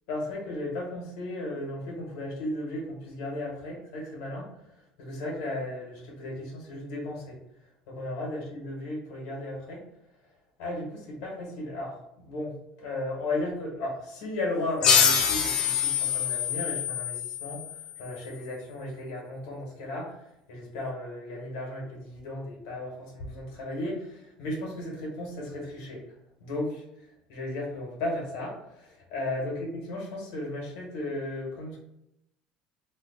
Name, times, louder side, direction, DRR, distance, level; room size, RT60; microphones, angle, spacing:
voice 1, 0.1-7.4 7.9-9.8 10.6-26.0 26.4-26.8 27.3-31.8, left 1 dB, 90° left, -2 dB, 1.2 m, -35 dB
sound 1, 14.8-18.1, left 7 dB, 35° left, 0.4 m, -25 dB
3.0 x 2.3 x 3.8 m, 0.81 s
cardioid pair, 175°, 2 cm